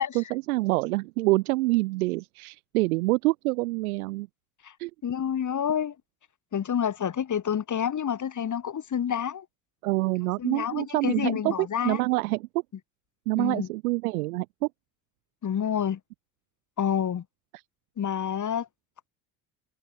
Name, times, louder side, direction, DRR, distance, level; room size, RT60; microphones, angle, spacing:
voice 1, 0.0-4.3 4.8-4.9 9.8-11.5 11.8-12.5 13.3-14.7, right 22 dB, 85° right, 1.9 m, -26 dB
voice 2, 5.0-5.9 6.5-9.4 10.4-12.0 13.4-13.7 15.4-16.0 16.8-17.2 18.0-18.7, left 8 dB, 45° left, 3.4 m, -28 dB
hypercardioid pair, 65°, 42 cm